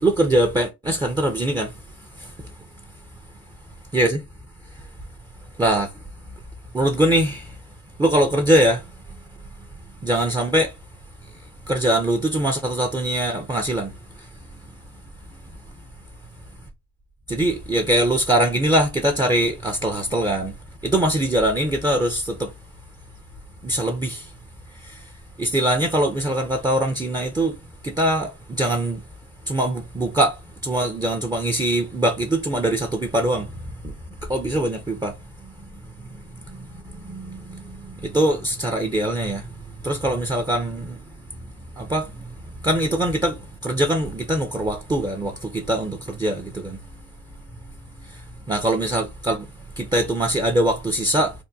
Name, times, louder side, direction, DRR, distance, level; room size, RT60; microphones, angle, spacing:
voice 1, 0.0-1.7 2.2-2.3 3.9-4.2 5.6-5.9 6.7-7.5 8.0-8.8 10.0-10.7 11.7-13.9 17.3-20.5 20.8-22.5 23.6-24.3 24.8-25.0 25.4-27.5 27.8-29.0 29.5-30.4 30.6-33.5 34.3-35.1 36.5-36.7 37.0-39.5 39.8-41.0 41.8-42.3 42.6-46.8 48.1-48.2 48.5-49.5 49.8-51.3, right 1 dB, 15° right, 0.6 m, -22 dB
3.4 x 2.2 x 2.7 m
cardioid pair, 90°, 30 cm